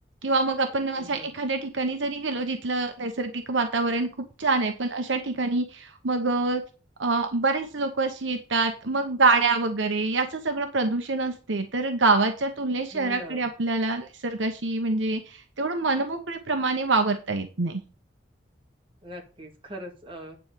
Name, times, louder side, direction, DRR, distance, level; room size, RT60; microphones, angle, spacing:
voice 1, 0.2-4.1 4.4-6.6 7.0-17.8, right 3 dB, 85° right, 6 dB, 1.1 m, -26 dB
voice 2, 1.0-1.4 12.9-13.5 19.0-20.4, right 1 dB, 30° right, 1 dB, 2.1 m, -41 dB
9.5 x 4.4 x 6.6 m, 0.34 s
head